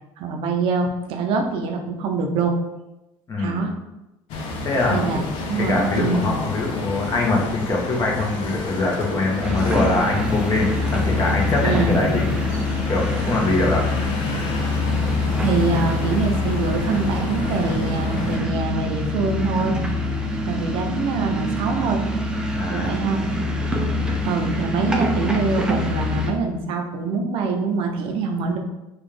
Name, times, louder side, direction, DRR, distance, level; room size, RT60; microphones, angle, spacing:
voice 1, 0.2-2.5 3.4-3.7 4.9-6.3 11.6-12.0 15.4-19.7 20.5-22.0 22.7-23.3 24.2-28.6, right 4 dB, 70° right, 3 dB, 0.6 m, -24 dB
voice 2, 3.3-3.7 4.6-5.2 5.6-12.3 12.9-13.8 22.5-23.0 24.0-24.3, left 2 dB, 35° left, -1 dB, 1.0 m, -23 dB
sound 1, 4.3-18.4, left 3 dB, 70° left, 0.7 m, -30 dB
sound 2, 9.4-26.3, left 2 dB, 10° right, 0.5 m, -25 dB
4.0 x 2.4 x 3.3 m, 0.97 s
cardioid pair, 110°, 10 cm